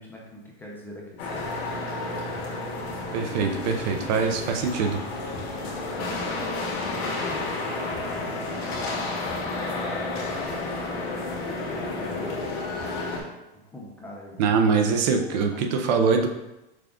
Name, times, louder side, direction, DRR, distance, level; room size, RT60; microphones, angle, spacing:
voice 1, 0.0-1.5 6.2-6.5 7.3-11.3 11.9-13.0 13.5-14.4 15.1-16.1, left 1 dB, 5° left, -3 dB, 0.5 m, -44 dB
sound 1, 1.2-13.2, left 2 dB, 85° left, 1.5 m, -31 dB
voice 2, 3.1-5.0 14.4-16.3, right 5 dB, 45° right, 4 dB, 0.5 m, -23 dB
6.0 x 2.4 x 3.5 m, 0.97 s
supercardioid pair, 155°, 30 cm